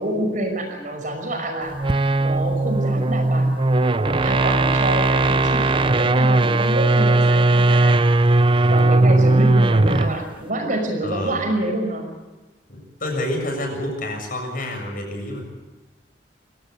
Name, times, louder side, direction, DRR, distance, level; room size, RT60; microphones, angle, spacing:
voice 1, 0.0-1.8 2.2-3.6 3.9-8.0 8.3-12.1, right 1 dB, 45° right, 4 dB, 5.7 m, -27 dB
sound 1, 1.7-10.2, right 2 dB, 30° right, 0.6 m, -18 dB
voice 2, 11.0-11.4 12.7-15.5, left 1 dB, 50° left, 2 dB, 7.5 m, -28 dB
25.0 x 17.0 x 8.3 m, 1.2 s
head